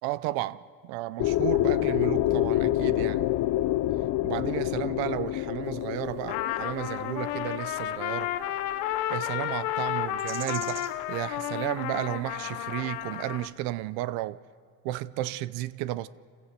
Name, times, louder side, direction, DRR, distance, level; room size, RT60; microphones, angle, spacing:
voice 1, 0.0-3.3 4.2-8.3 9.1-14.4 14.8-16.1, right 16 dB, 85° right, 0.7 m, -33 dB
sound 1, 1.2-9.0, left 14 dB, 55° left, 0.6 m, -27 dB
sound 2, 5.6-13.4, right 8 dB, 45° right, 1.2 m, -49 dB
Trumpet, 6.3-13.5, left 13 dB, 85° left, 0.9 m, -32 dB
27.0 x 16.0 x 6.6 m
cardioid pair, 95°, 37 cm